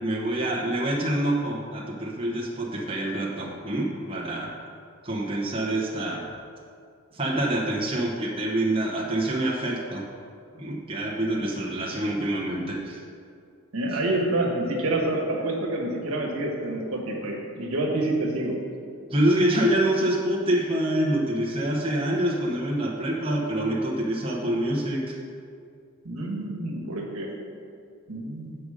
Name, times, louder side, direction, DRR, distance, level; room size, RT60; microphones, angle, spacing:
voice 1, 0.0-4.5 5.0-6.3 7.1-10.1 10.5-13.0 13.9-14.0 19.1-25.2, right 1 dB, 25° right, -4 dB, 0.9 m, -26 dB
voice 2, 13.7-18.6 26.0-27.3 28.1-28.6, right 2 dB, 70° right, -2 dB, 1.4 m, -28 dB
7.9 x 5.2 x 4.9 m, 2.3 s
head